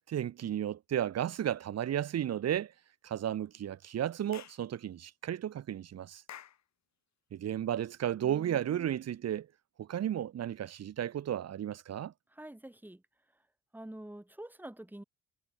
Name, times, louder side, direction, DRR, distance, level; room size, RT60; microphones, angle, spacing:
voice 1, 0.1-2.7 3.0-6.2 7.3-9.5 9.8-12.1, right 10 dB, 55° right, 1.3 m, -33 dB
Clapping / Chirp tweet, 4.3-4.6 6.3-6.6, left 10 dB, 65° left, 5.1 m, -48 dB
voice 2, 12.3-13.0 13.7-15.0, right 1 dB, 5° right, 5.0 m, -47 dB
cardioid pair, 90°, 30 cm